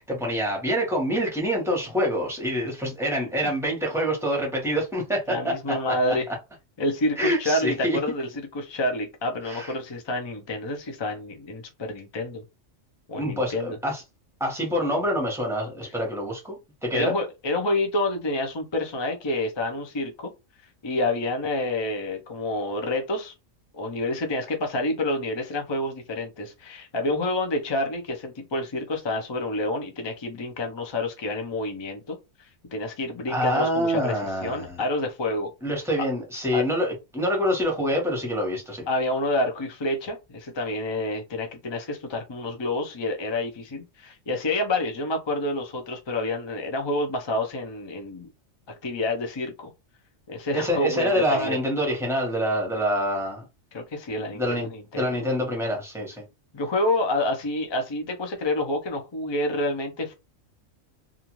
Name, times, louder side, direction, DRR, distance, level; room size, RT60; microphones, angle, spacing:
voice 1, 0.0-5.5 6.1-6.2 7.2-8.0 9.5-9.7 13.2-14.0 14.4-17.1 33.3-34.8 35.6-38.9 50.5-53.4 54.3-54.7 54.9-56.2, equal, ahead, 0.9 m, -26 dB
voice 2, 5.3-6.3 6.8-12.4 13.1-13.8 16.9-20.3 20.8-23.3 23.7-35.5 36.5-36.6 38.9-48.3 48.8-49.7 50.3-51.6 53.7-55.2 56.5-60.1, left 2 dB, 45° left, 0.3 m, -28 dB
2.5 x 2.4 x 3.0 m
omnidirectional pair, 1.4 m